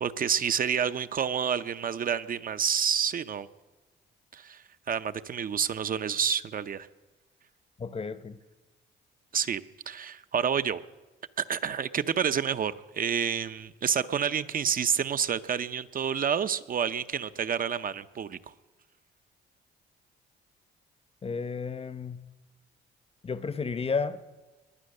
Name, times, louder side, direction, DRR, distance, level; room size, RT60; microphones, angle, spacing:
voice 1, 0.0-3.5 4.3-6.9 9.3-9.6 9.9-10.8 11.4-18.4, right 7 dB, 45° right, 12 dB, 0.6 m, -29 dB
voice 2, 7.8-8.4 21.2-22.3 23.2-24.2, left 5 dB, 30° left, 14 dB, 0.8 m, -32 dB
21.5 x 9.2 x 6.6 m, 1.2 s
cardioid pair, 90°, 20 cm